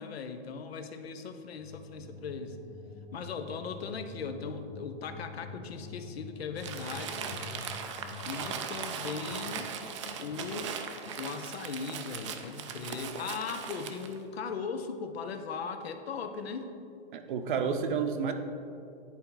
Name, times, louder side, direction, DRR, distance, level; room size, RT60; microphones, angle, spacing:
voice 1, 0.0-2.6 3.1-7.3 8.2-9.7 10.2-10.7 11.2-16.7, left 5 dB, 75° left, 8 dB, 0.8 m, -38 dB
sound 1, 1.6-8.9, left 4 dB, 25° left, 1.2 m, -47 dB
Crumpling crinkling, 6.6-14.2, right 7 dB, 30° right, 0.4 m, -39 dB
sound 2, 6.9-11.2 12.4-12.8, left 3 dB, 40° left, 0.8 m, -50 dB
voice 2, 17.1-18.3, right 6 dB, 55° right, 7 dB, 0.7 m, -30 dB
10.5 x 4.3 x 3.9 m, 2.6 s
hypercardioid pair, 155°, 31 cm